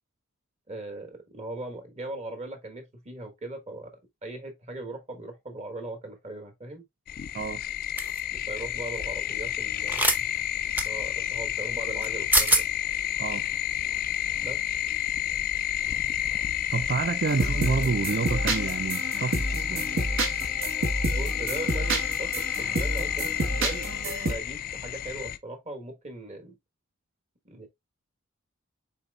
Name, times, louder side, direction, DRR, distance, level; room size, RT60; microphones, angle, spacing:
voice 1, 0.7-3.9 4.2-6.8 8.3-10.3 10.8-12.7 14.4-14.6 21.1-23.9 24.3-26.6 27.4-27.7, right 2 dB, 35° right, 1.2 m, -39 dB
sound 1, 7.1-25.4, left 11 dB, 45° left, 0.3 m, -30 dB
sound 2, 8.0-8.2 9.9-10.2 10.8-10.9 12.0-12.1 12.3-12.6, right 1 dB, 10° right, 0.7 m, -22 dB
voice 2, 16.7-19.9, right 5 dB, 50° right, 0.4 m, -29 dB
sound 3, 17.3-24.3, right 1 dB, 70° right, 1.2 m, -29 dB
5.5 x 4.1 x 2.3 m
head